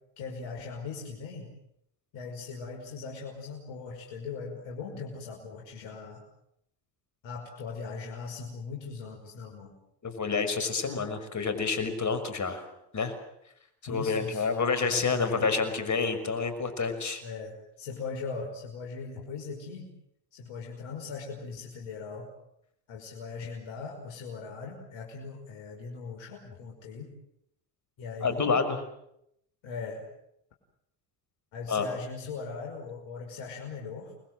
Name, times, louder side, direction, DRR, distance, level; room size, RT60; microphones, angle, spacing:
voice 1, 0.2-1.5 2.1-6.2 7.2-9.7 13.9-14.5 14.8-15.5 17.2-19.9 20.3-22.3 22.9-27.1 28.0-28.5 29.6-30.0 31.5-34.1, left 4 dB, 65° left, 1 dB, 5.7 m, -39 dB
voice 2, 10.0-12.6 12.9-13.1 13.9-17.2 28.2-28.7 31.7-31.9, left 5 dB, 35° left, 10 dB, 6.1 m, -28 dB
29.0 x 21.5 x 7.9 m, 0.79 s
hypercardioid pair, 70°, 49 cm